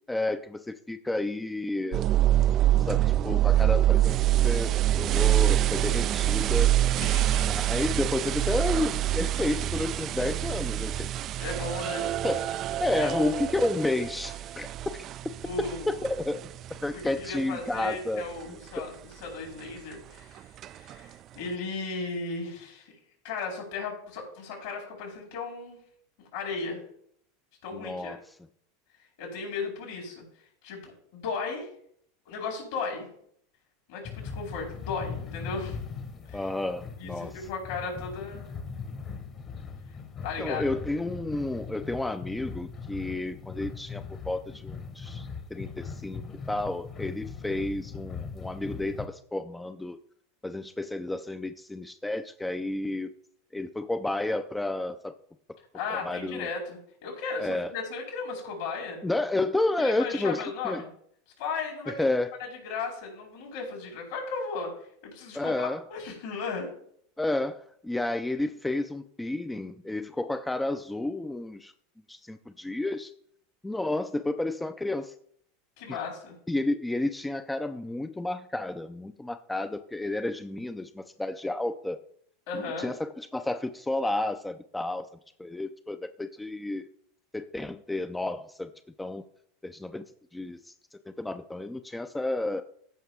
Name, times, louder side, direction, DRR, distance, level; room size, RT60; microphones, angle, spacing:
voice 1, 0.1-2.1 2.8-4.2 4.4-6.7 7.4-11.1 12.2-15.0 15.9-16.5 16.8-18.3 18.8-18.9 27.7-28.2 36.3-37.4 40.4-50.0 50.4-53.1 53.5-55.1 55.9-56.5 57.4-57.7 59.0-60.8 62.0-62.3 65.3-65.8 67.2-71.7 72.1-73.1 73.6-75.1 75.9-76.0 76.5-82.0 82.5-85.1 85.4-86.9 87.3-88.7 89.0-89.2 89.6-90.0 90.3-90.7 91.2-92.6, left 2 dB, 10° left, 9 dB, 0.5 m, -31 dB
sound 1, 1.9-16.7 17.2-17.3 17.9-18.0 20.6-20.7, right 13 dB, 45° right, 0.3 m, -25 dB
voice 2, 7.0-7.5 11.3-12.1 12.9-13.4 15.4-16.0 16.9-22.9 23.2-25.8 26.2-26.8 27.6-28.2 29.2-30.2 30.6-31.7 32.3-33.1 33.9-35.8 36.3-36.4 37.0-38.5 40.2-40.6 55.7-59.0 59.8-60.9 61.4-62.0 62.6-64.7 65.0-66.7 75.8-76.3 82.5-82.9, left 4 dB, 70° left, -1 dB, 4.8 m, -35 dB
sound 2, 34.0-49.0, left 5 dB, 35° left, 1.4 m, -40 dB
15.0 x 5.5 x 3.7 m, 0.66 s
hypercardioid pair, 90°, 0 cm